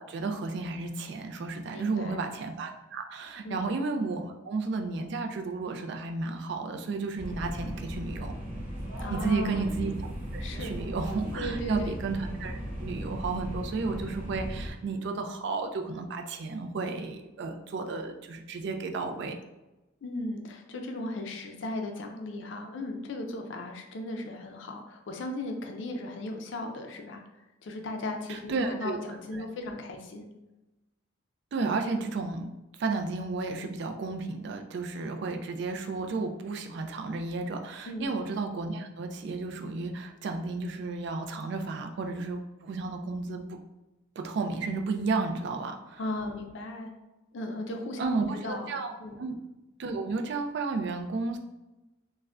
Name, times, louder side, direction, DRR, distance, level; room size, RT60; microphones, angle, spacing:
voice 1, 0.0-8.3 9.1-9.9 10.3-19.3 28.3-29.0 29.3-29.4 31.5-32.5 32.8-43.6 44.2-46.0 48.0-48.9 49.2-49.3 49.8-51.4, right 3 dB, 55° right, 5 dB, 0.3 m, -33 dB
voice 2, 1.7-2.3 3.4-3.6 9.0-9.7 10.4-10.7 11.4-11.9 20.0-27.2 27.6-30.3 37.9-38.1 46.0-46.9 47.3-48.7 49.0-49.2, left 1 dB, 60° left, 4 dB, 0.4 m, -36 dB
sound 1, 7.2-14.7, equal, 25° right, 0.9 m, -37 dB
2.4 x 2.1 x 3.3 m, 1.0 s
head